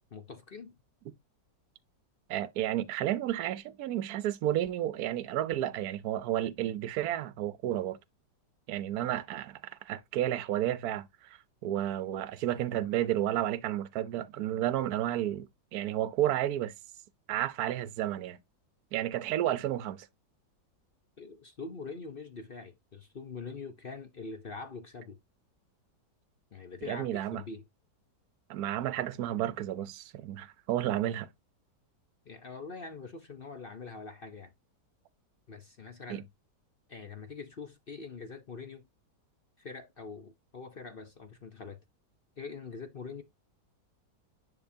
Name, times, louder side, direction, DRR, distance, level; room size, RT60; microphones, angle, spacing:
voice 1, 0.1-0.7 21.2-25.2 26.5-27.6 32.3-34.5 35.5-36.3 36.9-38.9 39.6-41.8 42.4-43.2, left 4 dB, 45° left, 0.7 m, -44 dB
voice 2, 2.3-8.0 8.7-9.6 9.9-16.7 17.3-18.4 18.9-20.1 26.9-27.4 28.5-31.3 36.1-36.2, right 12 dB, 65° right, 1.2 m, -32 dB
10.5 x 4.1 x 2.7 m
omnidirectional pair, 1.9 m